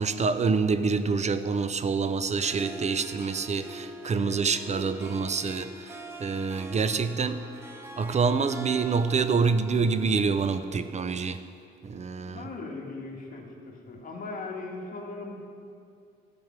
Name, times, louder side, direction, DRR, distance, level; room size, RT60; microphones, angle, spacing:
voice 1, 0.0-7.5 8.0-11.4 11.8-12.5, right 5 dB, 35° right, 11 dB, 0.6 m, -27 dB
Harp, 2.2-10.9, equal, 10° right, 1.2 m, -43 dB
voice 2, 12.3-13.5 13.9-15.3, left 3 dB, 45° left, -1 dB, 2.1 m, -38 dB
14.0 x 5.3 x 7.3 m, 2.4 s
cardioid pair, 90°, 20 cm